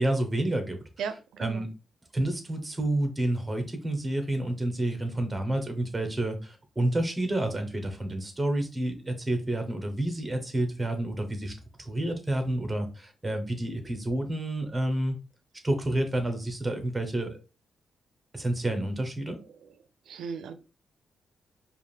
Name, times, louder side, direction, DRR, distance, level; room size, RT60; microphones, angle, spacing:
voice 1, 0.0-1.7 2.1-11.5 11.8-15.2 15.6-17.4 18.3-19.4, right 1 dB, 15° right, 6 dB, 1.1 m, -29 dB
voice 2, 20.1-20.5, right 6 dB, 90° right, 10 dB, 0.5 m, -34 dB
4.8 x 2.5 x 3.4 m, 0.32 s
cardioid pair, 100°, 0 cm